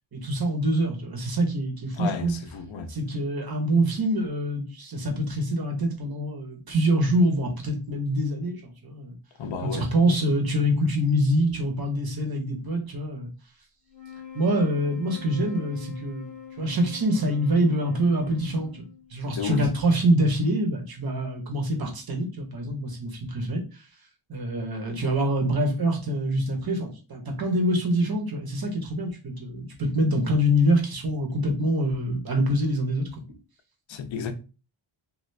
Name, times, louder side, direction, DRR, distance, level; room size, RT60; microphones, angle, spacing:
voice 1, 0.1-2.3 2.9-9.2 9.6-13.3 14.3-23.9 24.3-33.2, equal, 45° right, 1.0 m, -25 dB
voice 2, 2.0-2.9 9.4-9.9 19.3-19.7 33.9-34.3, left 6 dB, 70° left, 0.6 m, -32 dB
sound 1, 13.9-19.3, left 8 dB, 15° left, 0.8 m, -44 dB
2.7 x 2.6 x 3.2 m
wide cardioid pair, 115°, 49 cm